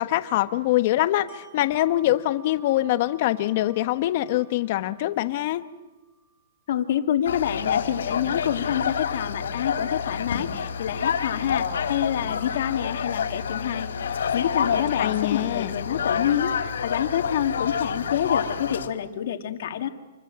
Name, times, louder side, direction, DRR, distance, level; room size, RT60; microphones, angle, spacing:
voice 1, 0.0-5.6 15.0-15.8, left 15 dB, 45° left, 11 dB, 1.2 m, -24 dB
Wind chime, 1.3-7.1 7.5-7.6, right 3 dB, 25° right, 7.9 m, -55 dB
voice 2, 6.7-19.9, left 10 dB, 60° left, 6 dB, 2.2 m, -27 dB
sound 1, 7.3-18.9, left 7 dB, 85° left, 3.1 m, -28 dB
27.5 x 22.5 x 7.6 m, 1.1 s
hypercardioid pair, 160°, 0 cm